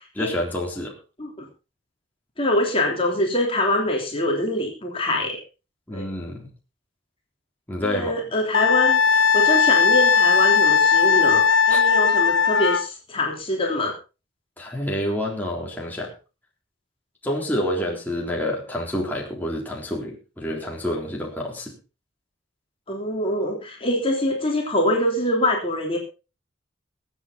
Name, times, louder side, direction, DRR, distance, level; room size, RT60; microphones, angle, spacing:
voice 1, 0.2-0.9 5.9-6.5 7.7-8.2 11.7-11.8 14.6-16.1 17.2-21.8, left 1 dB, 10° left, -2 dB, 3.6 m, -28 dB
voice 2, 2.4-5.4 5.9-6.0 7.8-13.9 22.9-26.0, left 1 dB, 25° left, 0 dB, 3.3 m, -24 dB
Wind instrument woodwind instrument, 8.5-12.9, left 6 dB, 70° left, 0.7 m, -18 dB
22.0 x 8.4 x 4.1 m, 0.32 s
head